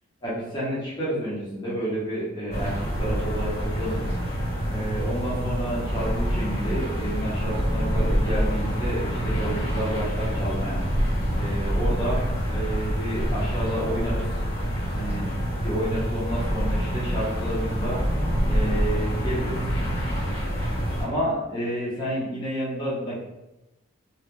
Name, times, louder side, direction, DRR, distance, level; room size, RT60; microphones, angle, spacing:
voice 1, 0.2-4.1 4.7-10.8 11.3-14.3 14.9-15.3 15.6-18.0 18.4-19.6 21.0-23.2, right 1 dB, 20° left, -8 dB, 0.8 m, -30 dB
sound 1, 2.5-21.1, equal, 45° left, 1.3 m, -26 dB
2.8 x 2.3 x 3.6 m, 0.98 s
head